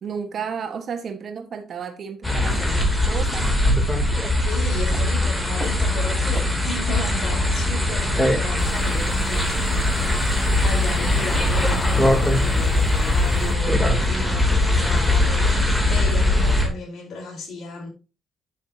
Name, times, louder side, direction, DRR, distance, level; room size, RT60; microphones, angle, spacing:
voice 1, 0.0-3.5, right 6 dB, 60° right, 1.4 m, -32 dB
sound 1, 2.2-16.7, left 1 dB, 10° left, 2.8 m, -21 dB
voice 2, 4.4-17.9, left 3 dB, 70° left, 4.2 m, -35 dB
sound 2, 4.9-13.7, right 1 dB, 10° right, 4.3 m, -41 dB
sound 3, 8.6-13.6, left 4 dB, 40° left, 0.7 m, -31 dB
9.0 x 7.3 x 2.8 m
cardioid pair, 75°, 0 cm